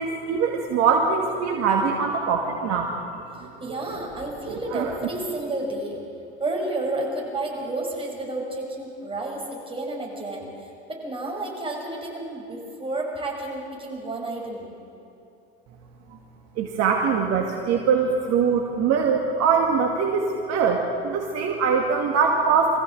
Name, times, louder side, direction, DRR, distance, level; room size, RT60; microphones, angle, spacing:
voice 1, 0.0-2.9 3.7-3.8 4.5-4.9 16.6-22.8, right 5 dB, 55° right, 1 dB, 2.2 m, -22 dB
voice 2, 3.6-6.0 6.4-10.5 10.9-14.7, right 2 dB, 15° right, -2 dB, 6.8 m, -31 dB
24.0 x 15.5 x 7.9 m, 2.8 s
hypercardioid pair, 80°, 31 cm